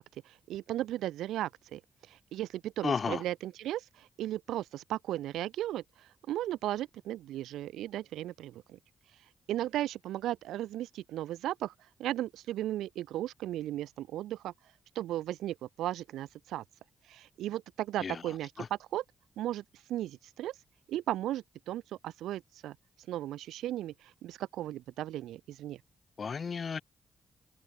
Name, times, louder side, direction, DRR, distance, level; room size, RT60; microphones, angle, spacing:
voice 1, 0.0-1.8 2.1-8.8 9.5-11.7 12.0-14.5 14.9-16.6 17.1-19.0 19.4-19.6 19.9-20.5 20.9-22.7 23.1-25.8, right 13 dB, 90° right, 2.9 m, -36 dB
voice 2, 2.8-3.2 18.0-18.2 18.6-18.7 26.2-26.8, left 5 dB, 55° left, 2.9 m, -33 dB
supercardioid pair, 55°, 0 cm